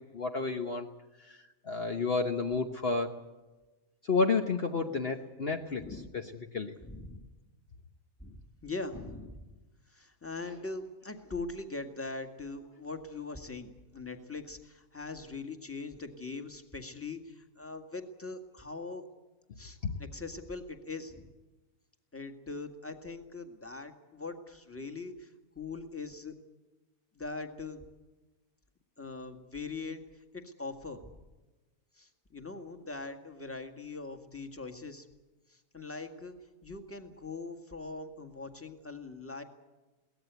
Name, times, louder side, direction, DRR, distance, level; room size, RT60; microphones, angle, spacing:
voice 1, 0.1-0.9 1.2-1.4 1.7-3.1 4.0-5.8 6.1-6.2 6.5-6.7 19.8-19.9, left 4 dB, 45° left, 3 dB, 1.3 m, -30 dB
voice 2, 6.8-7.3 8.2-9.5 9.9-19.0 19.6-21.3 22.1-26.4 27.2-27.8 29.0-31.2 32.0-35.1 35.5-36.3 36.6-39.4, left 3 dB, 10° left, 5 dB, 1.8 m, -42 dB
23.0 x 18.0 x 8.1 m, 1.1 s
omnidirectional pair, 1.5 m